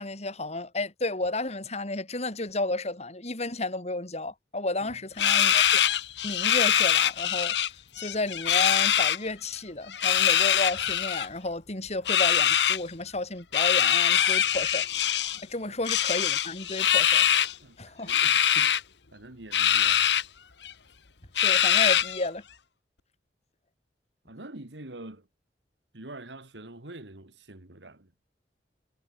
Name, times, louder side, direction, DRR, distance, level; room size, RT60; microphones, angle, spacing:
voice 1, 0.0-5.8 6.2-7.6 8.0-14.9 15.4-17.2 17.8-18.1 21.4-22.4, left 2 dB, 40° left, 3.5 m, -32 dB
sound 1, 5.2-7.7 8.0-9.2 9.9-11.3 12.0-12.8 13.5-15.4 15.8-17.5 18.1-18.8 19.5-20.2 20.6-20.7 21.4-22.2, left 10 dB, 80° left, 1.3 m, -23 dB
voice 2, 17.6-18.8 19.1-20.2 24.2-25.3 25.9-28.1, right 2 dB, 85° right, 2.5 m, -45 dB
head